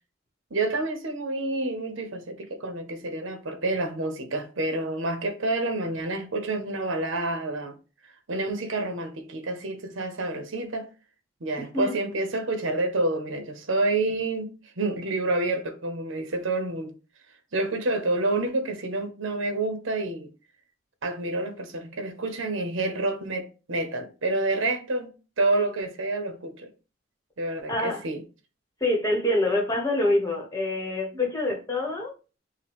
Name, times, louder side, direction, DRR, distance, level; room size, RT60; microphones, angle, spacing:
voice 1, 0.5-7.7 8.3-10.9 11.4-16.9 17.5-20.3 21.0-25.1 25.4-26.7 27.4-28.2, right 2 dB, 75° right, 0.8 m, -28 dB
voice 2, 27.7-28.0 28.8-32.1, left 1 dB, 15° left, 1.1 m, -26 dB
5.6 x 2.2 x 3.5 m
head